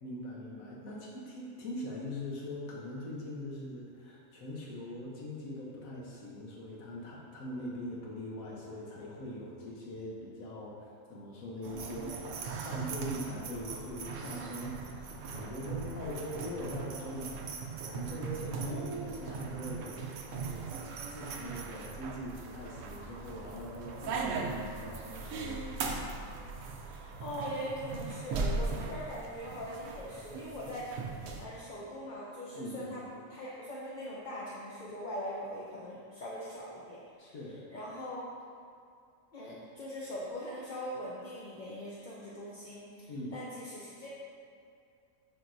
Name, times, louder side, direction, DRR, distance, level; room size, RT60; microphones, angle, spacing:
voice 1, 0.0-12.2 12.6-17.4 17.8-20.8 21.1-25.6 32.5-32.9 37.2-37.6 43.1-43.4, left 1 dB, 75° left, -4 dB, 1.3 m, -42 dB
sound 1, 11.6-31.4, right 4 dB, 85° right, 1.1 m, -39 dB
voice 2, 18.4-18.8 26.8-30.9 31.4-37.3 37.7-38.2 39.3-44.1, equal, 45° left, -6 dB, 0.7 m, -41 dB
7.8 x 4.7 x 2.6 m, 2.4 s
omnidirectional pair, 1.5 m